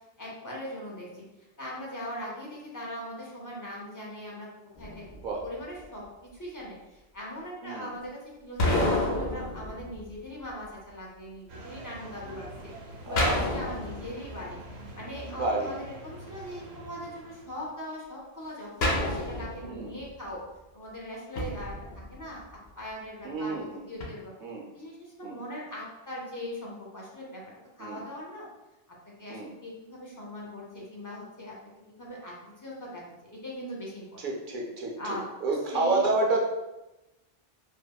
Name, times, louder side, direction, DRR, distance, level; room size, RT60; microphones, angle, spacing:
voice 1, 0.2-1.2 1.6-5.0 5.4-12.7 13.0-14.6 14.9-20.4 20.7-22.4 22.8-24.3 24.7-27.4 27.8-28.5 29.1-34.2 35.0-36.1, equal, 25° left, -4 dB, 0.5 m, -40 dB
sound 1, 4.8-5.6 8.6-10.5 13.2-14.7 18.8-20.1 21.4-22.5 24.0-24.1, left 1 dB, 80° left, 0.9 m, -30 dB
sound 2, 11.5-17.7, right 1 dB, 90° right, 0.9 m, -45 dB
voice 2, 15.4-15.8 19.7-19.9 23.2-23.8 24.4-24.6 25.2-25.4 27.8-28.0 29.3-29.5 34.2-34.9 35.4-36.4, right 3 dB, 60° right, 0 dB, 0.6 m, -29 dB
3.4 x 2.0 x 2.2 m, 0.99 s
omnidirectional pair, 1.0 m